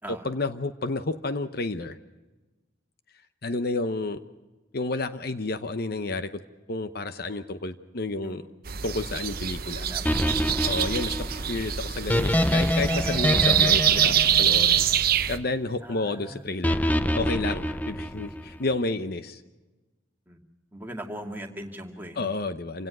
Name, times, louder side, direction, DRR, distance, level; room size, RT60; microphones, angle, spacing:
voice 1, 0.1-2.0 3.4-4.2 4.7-6.4 6.7-8.4 8.8-9.9 10.6-14.9 15.3-16.8 17.1-19.4 22.1-22.9, left 3 dB, 55° left, 10 dB, 0.9 m, -30 dB
sound 1, 8.7-15.4, right 9 dB, 50° right, 0.9 m, -25 dB
voice 2, 9.8-10.7 15.8-16.4 20.3-20.4 20.7-22.3, right 1 dB, 10° right, 2 dB, 2.3 m, -40 dB
sound 2, 10.1-15.3 16.6-18.6, left 1 dB, 10° left, 0.6 m, -26 dB
27.0 x 17.5 x 6.1 m, 1.2 s
head